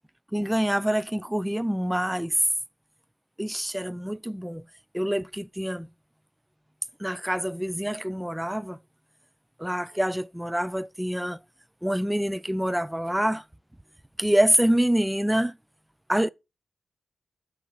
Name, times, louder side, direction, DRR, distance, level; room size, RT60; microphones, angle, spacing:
voice 1, 0.3-2.4 3.4-4.6 4.9-5.9 7.0-8.8 9.6-11.4 11.8-13.4 14.2-15.6 16.1-16.3, equal, 5° right, 0.3 m, -26 dB
8.0 x 5.0 x 4.7 m
wide cardioid pair, 120°, 0 cm